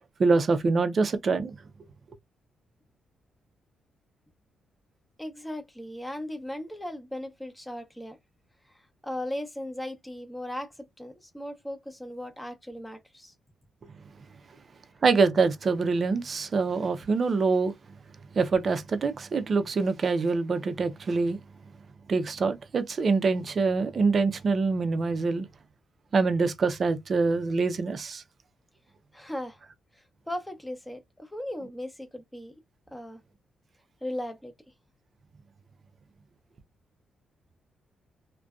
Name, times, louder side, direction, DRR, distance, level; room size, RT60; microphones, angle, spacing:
voice 1, 0.2-1.6 15.0-17.7 18.3-21.4 22.1-25.5 26.1-28.2, right 4 dB, 45° right, 0.4 m, -25 dB
voice 2, 5.2-8.2 8.7-13.3 29.1-29.6 29.9-32.6 32.9-33.2 34.0-34.5, left 1 dB, 10° left, 0.6 m, -37 dB
2.5 x 2.1 x 2.2 m
cardioid pair, 105°, 0 cm